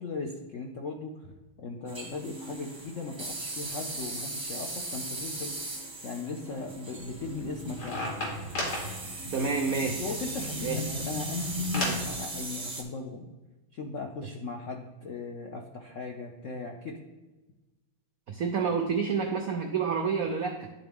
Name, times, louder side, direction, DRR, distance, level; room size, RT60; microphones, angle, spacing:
voice 1, 0.0-5.6 6.0-8.1 10.0-13.3 13.7-16.9, left 3 dB, 75° left, 1 dB, 0.7 m, -38 dB
sound 1, 1.9-12.8, right 2 dB, 20° right, 0.7 m, -39 dB
sound 2, 7.0-12.1, left 1 dB, 50° left, 2.4 m, -35 dB
voice 2, 9.3-10.0 10.6-10.8 18.3-20.7, right 5 dB, 80° right, 4 dB, 0.7 m, -29 dB
11.0 x 3.9 x 3.5 m, 1.1 s
omnidirectional pair, 2.3 m